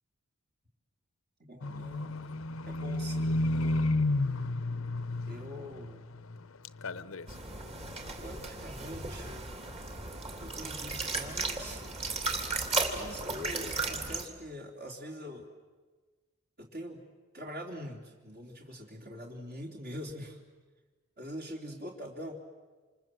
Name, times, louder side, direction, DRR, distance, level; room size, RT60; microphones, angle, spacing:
voice 1, 1.4-2.2 2.6-3.8 5.3-6.1 8.2-9.5 10.4-11.8 12.9-15.5 16.6-17.0 17.3-20.4 21.2-22.3, equal, 50° right, 0 dB, 3.4 m, -43 dB
Livestock farm animals working animals, 1.6-6.4 6.6-7.4 7.8-7.9, left 2 dB, 70° left, 0.8 m, -32 dB
sound 1, 7.3-14.3, right 3 dB, 30° right, 3.0 m, -35 dB
28.0 x 27.0 x 7.8 m, 1.3 s
head